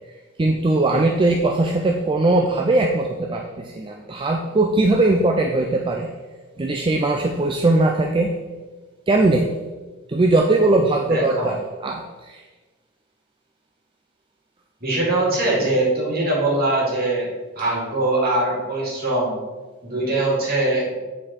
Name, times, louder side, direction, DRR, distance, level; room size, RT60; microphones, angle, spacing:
voice 1, 0.4-6.2 6.6-8.4 9.1-9.6 10.1-12.4, right 2 dB, 25° right, 2 dB, 0.4 m, -20 dB
voice 2, 11.1-11.5 14.8-17.3 17.6-19.3 19.8-21.0, right 2 dB, 50° right, -4 dB, 2.3 m, -22 dB
7.6 x 4.5 x 4.1 m, 1.3 s
head